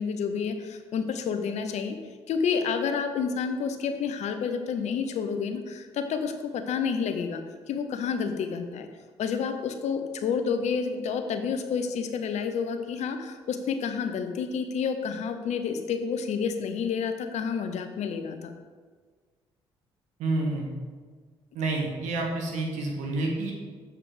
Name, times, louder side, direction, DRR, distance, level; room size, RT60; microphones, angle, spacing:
voice 1, 0.0-2.0 2.3-7.4 7.7-8.9 9.2-18.5, left 6 dB, 65° left, 7 dB, 0.8 m, -29 dB
voice 2, 20.2-20.7 21.5-23.5, right 2 dB, 75° right, 0 dB, 1.7 m, -28 dB
7.4 x 4.9 x 5.0 m, 1.5 s
hypercardioid pair, 55°, 13 cm